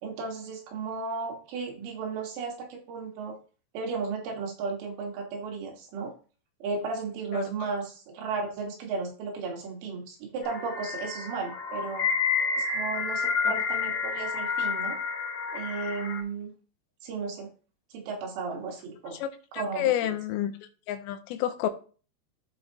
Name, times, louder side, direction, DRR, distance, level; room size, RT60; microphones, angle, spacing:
voice 1, 0.0-3.4 3.7-6.1 6.6-12.1 12.6-15.0 15.5-16.5 17.0-17.5 17.9-19.2 19.6-20.1, right 4 dB, 85° right, 4.0 m, -34 dB
sound 1, 10.4-16.2, left 5 dB, 60° left, 2.9 m, -29 dB
voice 2, 19.2-20.5 20.9-21.7, left 12 dB, 90° left, 3.1 m, -29 dB
13.5 x 4.7 x 2.9 m
omnidirectional pair, 4.9 m